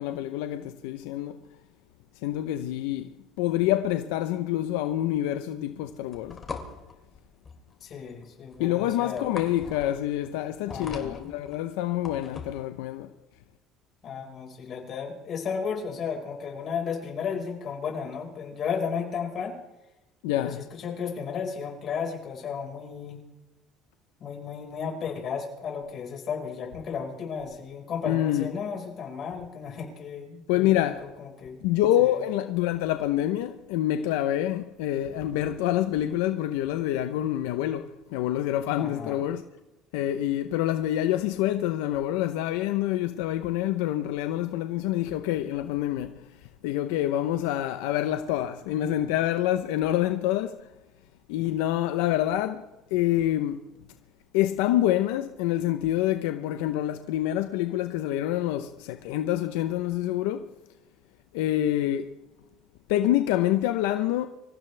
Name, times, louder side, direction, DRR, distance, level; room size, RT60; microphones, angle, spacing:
voice 1, 0.0-1.4 2.2-6.4 8.6-13.1 20.2-20.6 28.0-28.5 30.5-31.1 31.6-39.4 39.9-50.7 51.3-53.6 54.3-60.5 61.3-62.1 62.9-64.3, left 13 dB, 90° left, 0.8 m, -27 dB
sound 1, 6.1-12.7, left 5 dB, 30° left, 2.7 m, -41 dB
voice 2, 7.8-9.3 10.7-11.3 14.0-19.5 20.4-23.2 24.2-31.6 32.0-32.2 38.8-39.2, left 6 dB, 45° left, 5.0 m, -34 dB
25.5 x 15.5 x 3.4 m
cardioid pair, 115°, 0 cm